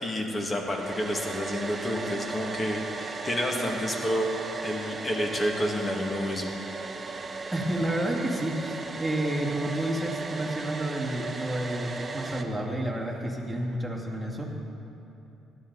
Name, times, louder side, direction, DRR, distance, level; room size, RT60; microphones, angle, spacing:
voice 1, 0.0-4.3 4.6-6.5, equal, 25° left, 1 dB, 2.1 m, -29 dB
Domestic sounds home sounds, 0.7-12.4, right 3 dB, 30° right, 0.9 m, -36 dB
voice 2, 7.5-14.4, right 1 dB, 5° right, -3 dB, 2.5 m, -30 dB
17.5 x 11.5 x 4.1 m, 3.0 s
cardioid pair, 95°, 0 cm